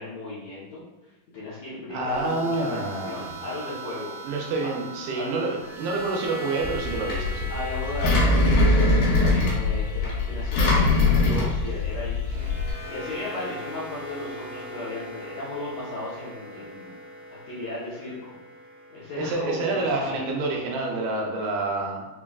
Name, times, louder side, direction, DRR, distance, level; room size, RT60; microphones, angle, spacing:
voice 1, 0.0-4.1 5.1-5.3 7.5-16.9 17.4-18.3 18.9-20.2, left 2 dB, 70° left, -10 dB, 1.6 m, -36 dB
voice 2, 1.9-3.5 4.2-7.5 19.2-22.1, right 2 dB, 80° right, 0 dB, 2.0 m, -28 dB
sound 1, 2.0-20.2, right 1 dB, 65° right, 0.9 m, -41 dB
Engine, 6.6-12.7, left 2 dB, 85° left, 2.7 m, -22 dB
5.6 x 2.4 x 2.3 m, 1.0 s
omnidirectional pair, 3.9 m